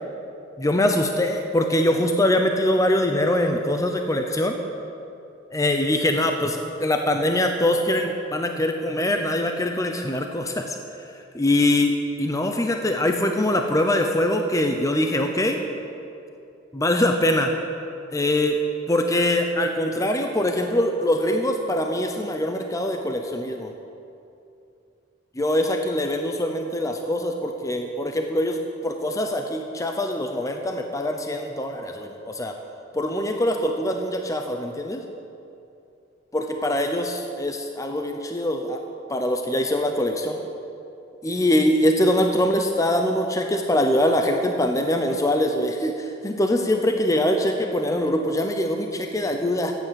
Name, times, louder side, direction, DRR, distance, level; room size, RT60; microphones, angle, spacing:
voice 1, 0.6-4.6 5.5-11.9 12.2-15.6 16.7-17.5 18.1-18.6 18.9-23.7 25.4-32.6 32.9-35.0 36.3-38.8 39.1-40.4 41.2-49.7, left 1 dB, 20° left, 4 dB, 0.7 m, -23 dB
14.5 x 9.2 x 7.6 m, 2.7 s
head